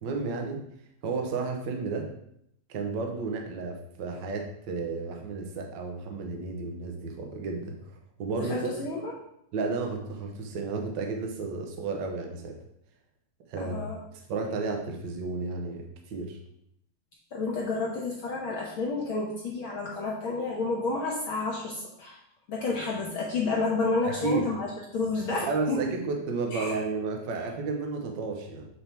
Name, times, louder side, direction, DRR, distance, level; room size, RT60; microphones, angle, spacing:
voice 1, 0.0-0.6 1.0-2.1 2.7-7.8 8.2-8.5 9.5-12.5 13.5-13.8 14.1-16.4 24.0-24.4 25.4-28.7, right 4 dB, 80° right, 2 dB, 1.0 m, -32 dB
voice 2, 8.4-9.1 13.6-14.0 17.3-22.2 22.5-24.7 24.9-25.8 26.5-26.8, left 3 dB, 60° left, -3 dB, 1.4 m, -30 dB
8.4 x 3.5 x 4.5 m, 0.75 s
omnidirectional pair, 3.4 m